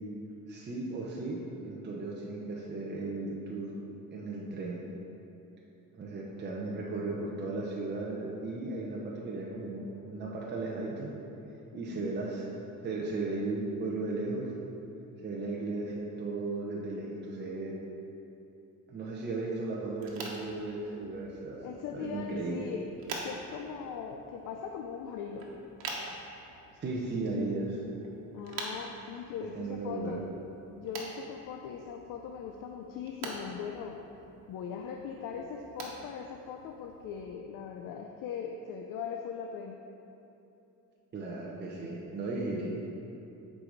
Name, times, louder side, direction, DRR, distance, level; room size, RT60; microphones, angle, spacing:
voice 1, 0.5-3.7 4.1-4.8 5.9-11.1 11.7-12.5 12.8-14.5 15.2-17.7 18.9-21.6 21.9-22.7 26.8-27.8 29.5-30.2 41.1-42.7, right 2 dB, 30° right, -3 dB, 0.9 m, -36 dB
voice 2, 11.7-12.0 21.6-22.9 23.2-25.5 28.3-30.2 30.8-34.0 34.5-39.8, left 7 dB, 70° left, 3 dB, 0.5 m, -40 dB
sound 1, 19.9-37.2, right 3 dB, 80° right, 1.2 m, -46 dB
9.7 x 4.8 x 3.9 m, 2.9 s
cardioid pair, 120°, 34 cm